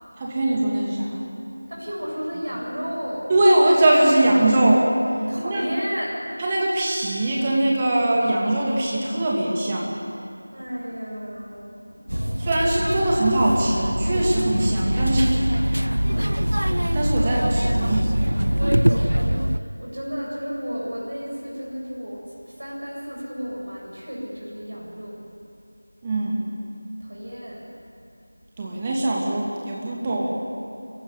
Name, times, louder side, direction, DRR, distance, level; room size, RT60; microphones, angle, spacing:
voice 1, 0.2-1.2 3.3-4.9 5.4-5.6 6.4-9.9 12.4-15.5 16.9-18.1 26.0-26.5 28.6-30.4, right 1 dB, 15° right, -3 dB, 2.6 m, -21 dB
voice 2, 1.7-3.3 5.3-6.3 10.5-12.1 18.5-25.2 27.0-27.7, equal, 60° right, -4 dB, 8.0 m, -33 dB
sound 1, 12.1-19.6, equal, 80° right, 0.8 m, -23 dB
27.0 x 15.5 x 9.9 m, 2.7 s
figure-of-eight pair, 170°, 0 cm